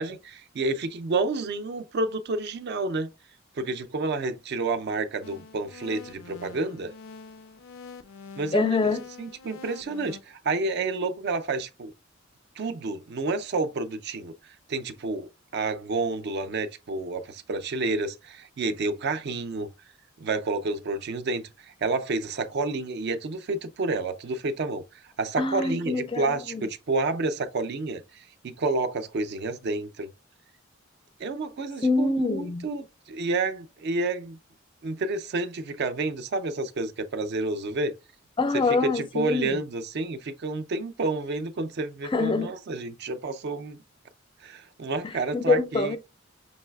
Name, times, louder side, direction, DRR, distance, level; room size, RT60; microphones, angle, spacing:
voice 1, 0.0-3.1 3.6-6.9 8.4-8.9 9.2-11.9 12.6-14.3 14.7-19.7 20.2-21.4 21.8-24.8 25.2-30.1 31.2-34.4 34.8-38.0 38.8-43.8 44.4-45.9, right 3 dB, 55° right, 0.4 m, -29 dB
sound 1, 5.2-10.2, left 4 dB, 90° left, 0.4 m, -45 dB
voice 2, 8.5-9.0 25.4-26.6 31.8-32.7 38.4-39.6 42.0-42.5 45.0-46.0, left 3 dB, 25° left, 0.4 m, -25 dB
5.3 x 3.1 x 2.2 m
head